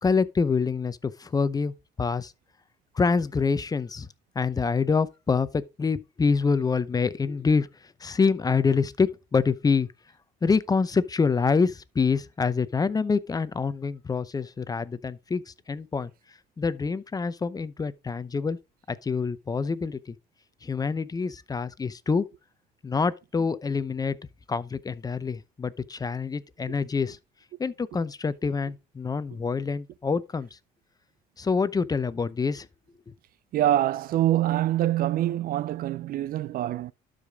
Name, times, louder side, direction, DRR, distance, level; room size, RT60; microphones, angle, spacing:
voice 1, 0.0-1.7 2.0-2.3 2.9-4.1 4.3-7.7 8.0-9.9 10.4-16.1 16.6-18.6 18.9-20.2 20.6-22.3 22.8-24.2 24.5-27.2 27.6-30.5 31.4-32.7, left 5 dB, 20° left, 0.7 m, -26 dB
voice 2, 33.5-36.9, right 13 dB, 60° right, 0.5 m, -25 dB
12.0 x 5.0 x 3.6 m
cardioid pair, 110°, 17 cm